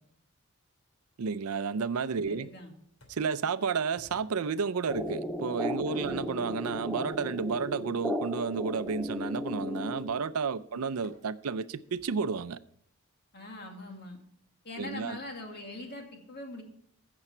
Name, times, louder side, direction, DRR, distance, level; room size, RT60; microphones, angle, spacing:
voice 1, 1.2-2.5 3.1-12.6 14.8-15.2, right 5 dB, 90° right, 0.5 m, -32 dB
voice 2, 2.3-2.7 5.9-6.3 10.7-10.9 13.3-14.2 14.6-16.6, left 1 dB, 50° left, 2.1 m, -42 dB
sound 1, 3.0-3.4 4.0-4.4 4.9-5.3 6.0-6.5 7.2-7.4 8.9-9.3 10.0-10.3 11.0-11.2 11.9-12.2, equal, 85° left, 3.1 m, -57 dB
sound 2, 4.9-10.4, left 1 dB, ahead, 0.6 m, -35 dB
15.0 x 6.9 x 4.3 m
head